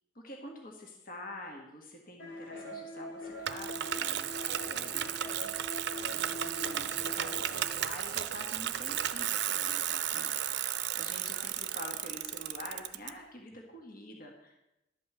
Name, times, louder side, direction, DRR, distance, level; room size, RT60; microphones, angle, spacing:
voice 1, 0.1-5.1 6.1-10.3 10.9-14.7, left 1 dB, 50° left, 1 dB, 1.5 m, -47 dB
sound 1, 2.2-7.6, left 1 dB, 75° left, 2.5 m, -43 dB
Bicycle, 3.5-13.1, right 11 dB, 60° right, 0.5 m, -34 dB
11.5 x 5.5 x 7.8 m, 0.91 s
head